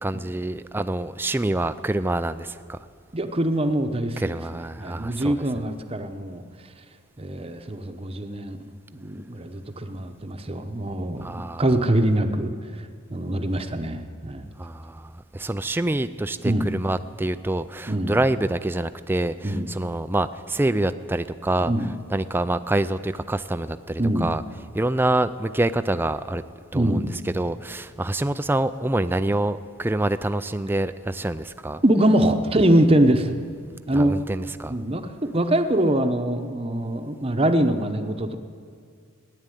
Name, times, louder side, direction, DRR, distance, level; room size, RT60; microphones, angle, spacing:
voice 1, 0.0-2.8 4.2-5.3 11.2-11.6 14.6-21.7 22.1-24.4 24.7-26.4 26.7-27.1 27.3-31.8 33.9-34.7, right 1 dB, 10° right, 11 dB, 0.3 m, -26 dB
voice 2, 3.1-6.4 7.2-14.5 16.4-16.7 17.9-18.2 19.4-19.7 21.7-21.9 24.0-24.4 26.7-27.1 31.8-33.4 33.9-34.2 34.7-38.4, right 1 dB, 25° right, 7 dB, 0.8 m, -23 dB
15.0 x 10.0 x 9.2 m, 2.1 s
head